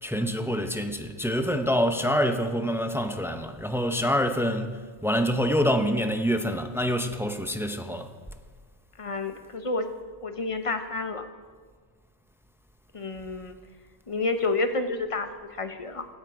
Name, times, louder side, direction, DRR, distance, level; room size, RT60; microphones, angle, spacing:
voice 1, 0.0-8.2, equal, 5° right, 0.4 m, -26 dB
voice 2, 9.0-9.9 10.2-11.2 12.9-13.5 14.1-16.1, left 3 dB, 35° left, 0.8 m, -29 dB
16.5 x 8.0 x 5.0 m
omnidirectional pair, 1.1 m